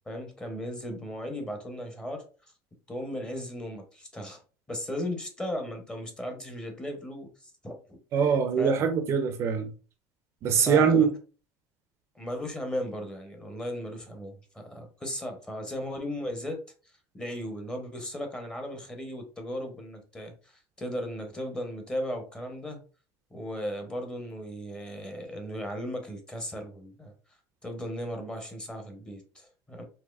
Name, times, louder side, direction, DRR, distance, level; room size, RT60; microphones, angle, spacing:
voice 1, 0.0-2.2 2.9-4.4 4.7-7.3 7.6-8.0 8.2-8.9 10.6-11.1 12.2-16.6 17.1-22.8 23.3-27.1 27.6-29.8, equal, 10° left, 0.7 m, -36 dB
voice 2, 8.1-9.7 10.4-11.1, right 7 dB, 40° right, 0.4 m, -23 dB
4.1 x 2.8 x 2.3 m
cardioid pair, 155°, 7 cm